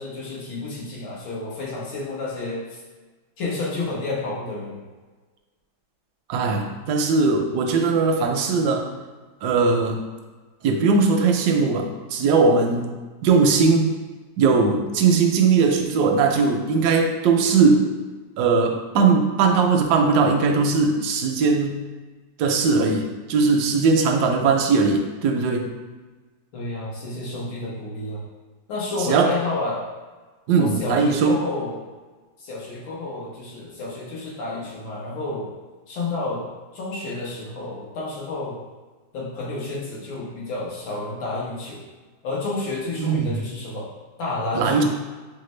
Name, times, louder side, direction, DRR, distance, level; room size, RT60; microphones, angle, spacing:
voice 1, 0.0-2.8 3.4-4.8 26.5-28.2 28.7-29.8 30.5-31.8 32.4-35.5 35.9-36.5 36.7-38.6 39.1-41.8 42.2-43.9 44.2-44.8, left 2 dB, 75° left, -5 dB, 1.8 m, -30 dB
voice 2, 6.3-8.9 9.4-10.0 10.6-12.9 13.2-13.9 14.4-17.9 18.4-21.8 22.4-25.7 29.0-29.3 30.5-31.4 43.0-43.3 44.5-44.8, right 4 dB, 75° right, 3 dB, 0.9 m, -19 dB
5.8 x 2.2 x 3.1 m, 1.3 s
omnidirectional pair, 2.1 m